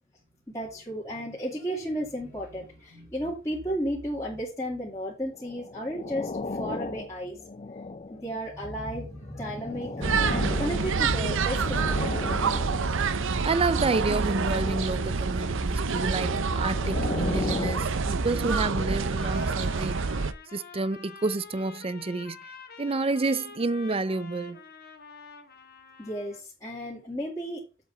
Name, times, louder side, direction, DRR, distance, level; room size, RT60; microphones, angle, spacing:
voice 1, 0.5-7.4 8.1-12.4 26.0-27.6, equal, 15° left, 2.7 m, -33 dB
sound 1, 5.3-8.4 9.1-13.3 14.0-15.2 16.0-19.4 20.0-20.2, left 3 dB, 30° left, 0.5 m, -37 dB
sound 2, 10.0-20.3, right 4 dB, 65° right, 0.7 m, -27 dB
voice 2, 13.4-20.0 20.5-22.5 22.8-24.7, right 3 dB, 25° right, 0.5 m, -29 dB
Trumpet, 19.0-26.4, left 5 dB, 50° left, 1.9 m, -47 dB
7.9 x 5.1 x 6.9 m
head